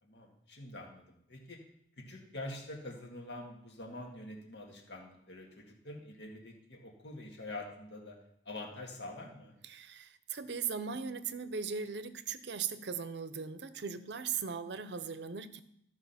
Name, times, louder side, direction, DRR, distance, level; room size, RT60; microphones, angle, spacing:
voice 1, 0.0-1.6 2.0-8.2 8.5-9.6, left 2 dB, 65° left, 1 dB, 1.8 m, -46 dB
voice 2, 9.6-15.6, right 6 dB, 65° right, 12 dB, 0.6 m, -38 dB
14.0 x 4.8 x 5.7 m, 0.73 s
head